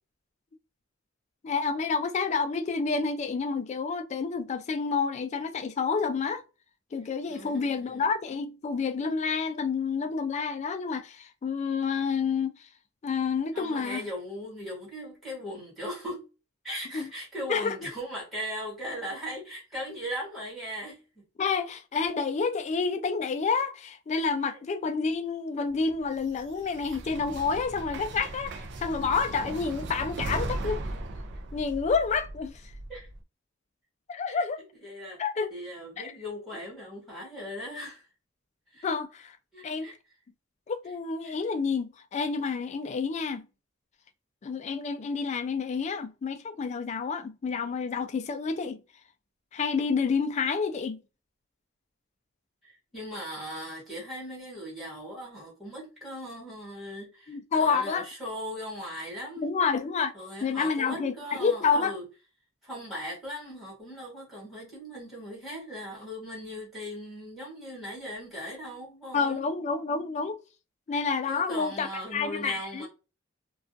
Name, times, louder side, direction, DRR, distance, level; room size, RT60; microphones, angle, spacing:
voice 1, 1.4-6.4 6.9-12.5 13.0-14.0 16.9-17.1 17.5-17.8 21.4-30.8 31.5-32.5 34.1-34.6 35.2-35.5 36.0-36.1 38.8-39.4 39.6-39.9 40.7-43.4 44.4-48.8 49.5-51.0 57.3-58.1 59.4-60.1 60.4-61.9 69.1-70.4 70.9-72.9, left 5 dB, 35° left, 0.3 m, -29 dB
voice 2, 7.3-8.0 13.5-16.2 16.6-21.2 31.3-31.4 32.9-33.1 34.3-34.4 34.8-35.2 35.5-38.0 38.7-38.9 39.5-39.9 41.2-41.3 52.6-59.6 60.1-62.0 62.6-69.5 70.9-71.0 71.3-72.9, equal, ahead, 1.2 m, -39 dB
sound 1, 25.9-33.2, right 2 dB, 60° right, 0.4 m, -38 dB
2.3 x 2.2 x 2.4 m
head